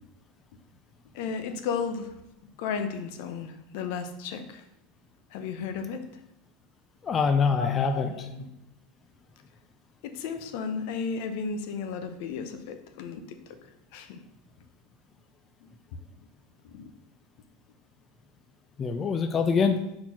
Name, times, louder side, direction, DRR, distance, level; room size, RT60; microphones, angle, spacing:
voice 1, 1.1-4.6 5.3-6.0 7.5-8.5 10.0-13.6 13.9-14.2 16.6-16.9, left 5 dB, 70° left, 8 dB, 0.7 m, -34 dB
voice 2, 7.0-8.1 18.8-19.8, left 5 dB, 30° left, 8 dB, 0.4 m, -24 dB
4.4 x 4.2 x 5.6 m, 0.87 s
supercardioid pair, 115°, 0 cm